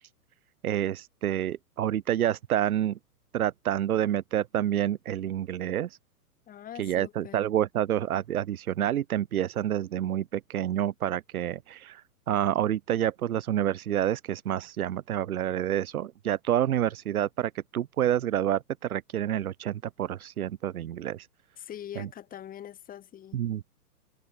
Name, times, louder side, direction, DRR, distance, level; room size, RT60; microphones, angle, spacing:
voice 1, 0.6-3.0 3.3-6.0 6.8-21.3 22.0-22.1 23.3-23.6, right 11 dB, 70° right, 1.9 m, -28 dB
voice 2, 6.5-7.4 21.6-23.4, left 10 dB, 20° left, 2.9 m, -43 dB
hypercardioid pair, 140°, 45 cm